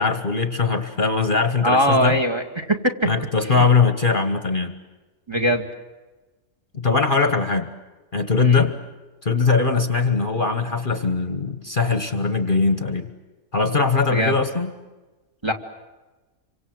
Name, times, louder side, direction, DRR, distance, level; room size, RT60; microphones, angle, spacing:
voice 1, 0.0-2.2 3.0-4.7 6.7-7.7 8.1-8.8 9.2-13.1 13.5-14.7, left 4 dB, 35° left, 9 dB, 1.5 m, -21 dB
voice 2, 1.6-2.8 3.4-3.7 5.3-5.6 8.4-8.7 14.1-14.4 15.4-15.5, equal, 20° right, 4 dB, 2.0 m, -21 dB
27.0 x 25.0 x 7.9 m, 1.2 s
omnidirectional pair, 1.5 m